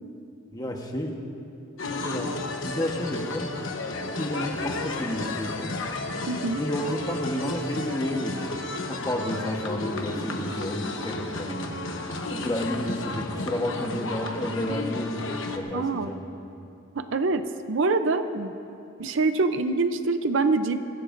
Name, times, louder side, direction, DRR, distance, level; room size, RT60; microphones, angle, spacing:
voice 1, 0.5-1.2 1.9-2.3 2.6-3.5 4.1-5.7 6.6-8.5 8.8-11.8 12.3-15.3 15.5-16.3, left 1 dB, 15° left, 1 dB, 1.1 m, -31 dB
sound 1, 1.8-15.6, left 2 dB, 60° left, 1.0 m, -33 dB
voice 2, 6.3-6.6 15.7-16.1 16.9-17.4 17.7-18.5 19.0-20.8, right 3 dB, 60° right, 9 dB, 0.6 m, -25 dB
24.0 x 15.5 x 2.6 m, 2.7 s
head